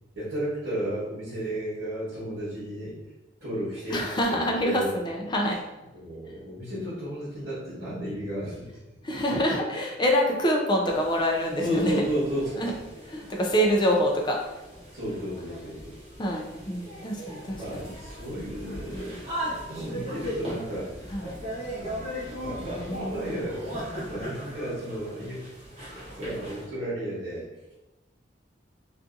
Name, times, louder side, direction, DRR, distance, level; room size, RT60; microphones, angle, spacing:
voice 1, 0.1-3.0 3.4-4.0 4.3-4.9 5.9-8.7 11.6-12.6 14.9-15.9 17.2-19.1 19.7-20.9 21.8-23.7 24.0-25.5 26.1-27.7, equal, 70° right, -11 dB, 1.0 m, -33 dB
voice 2, 3.9-5.6 9.0-12.0 12.6-12.7 13.0-14.4 16.2-17.9 21.1-21.4, equal, 25° left, 0 dB, 0.4 m, -26 dB
sound 1, 10.9-26.6, equal, 30° right, 0.8 m, -38 dB
2.6 x 2.5 x 2.4 m, 1.0 s
head